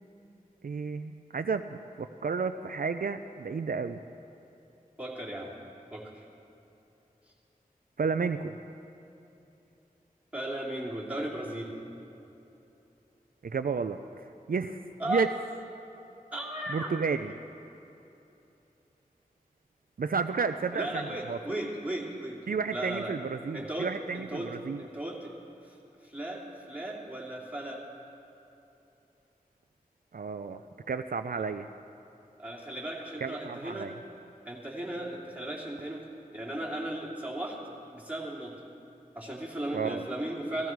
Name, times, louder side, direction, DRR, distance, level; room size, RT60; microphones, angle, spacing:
voice 1, 0.6-4.0 8.0-8.5 13.4-14.8 15.1-15.3 16.7-17.3 20.0-21.4 22.5-24.8 30.1-30.6 30.9-31.7 33.2-33.9 39.7-40.0, right 5 dB, 70° right, 9 dB, 0.4 m, -32 dB
voice 2, 5.0-5.5 5.9-6.3 10.3-11.8 15.0-15.2 16.3-16.9 20.7-23.1 23.5-24.5 24.8-25.3 25.6-25.7 26.0-27.8 32.4-33.9 34.4-36.1 36.3-37.6 37.9-38.5 39.1-40.7, right 1 dB, 10° right, -5 dB, 3.1 m, -36 dB
16.5 x 15.0 x 4.6 m, 2.9 s
wide cardioid pair, 55°, 15 cm